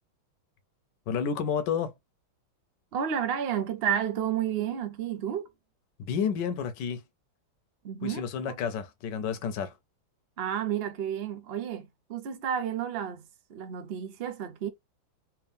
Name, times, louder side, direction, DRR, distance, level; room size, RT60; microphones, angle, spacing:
voice 1, 1.1-1.9 6.0-7.0 8.0-9.7, left 7 dB, 70° left, 1.3 m, -30 dB
voice 2, 2.9-5.5 7.8-8.2 10.4-14.7, right 9 dB, 65° right, 0.6 m, -31 dB
3.5 x 3.0 x 3.4 m
omnidirectional pair, 2.2 m